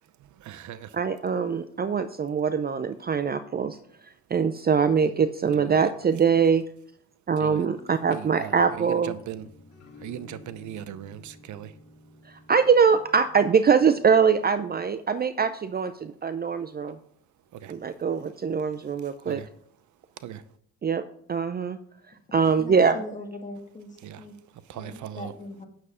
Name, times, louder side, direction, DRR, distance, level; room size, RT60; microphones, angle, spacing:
voice 1, 0.0-1.0 5.5-5.9 7.4-7.7 8.1-9.5 10.0-11.8 17.5-18.0 19.0-19.5 19.9-20.5 24.0-25.3, right 11 dB, 75° right, 0.7 m, -40 dB
voice 2, 0.9-6.6 7.3-9.1 12.2-17.0 17.7-19.4 20.8-21.0 21.3-21.8 22.1-23.0, right 6 dB, 30° right, 0.5 m, -23 dB
sound 1, 9.0-15.0, left 2 dB, 55° left, 2.4 m, -52 dB
voice 3, 22.4-24.4 24.7-25.7, left 2 dB, 25° left, 1.8 m, -40 dB
9.1 x 6.9 x 4.9 m
cardioid pair, 90°, 30 cm